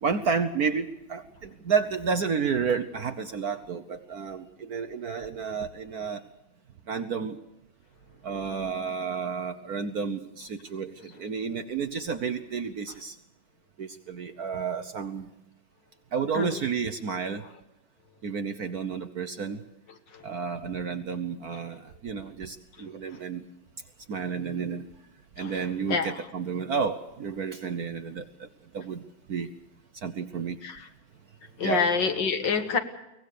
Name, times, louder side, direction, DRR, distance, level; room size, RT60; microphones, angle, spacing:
voice 1, 0.0-6.3 6.9-7.4 8.2-13.2 13.8-15.3 16.1-17.4 18.2-19.6 20.2-23.4 24.1-24.9 25.4-28.5 28.7-29.0 29.3-29.5 29.9-30.6 31.6-31.9, right 6 dB, 55° right, 9 dB, 1.2 m, -31 dB
voice 2, 22.8-23.2 25.4-26.2 30.6-30.9 31.6-32.8, left 5 dB, 60° left, 7 dB, 2.1 m, -28 dB
23.0 x 19.0 x 6.8 m, 0.94 s
omnidirectional pair, 2.3 m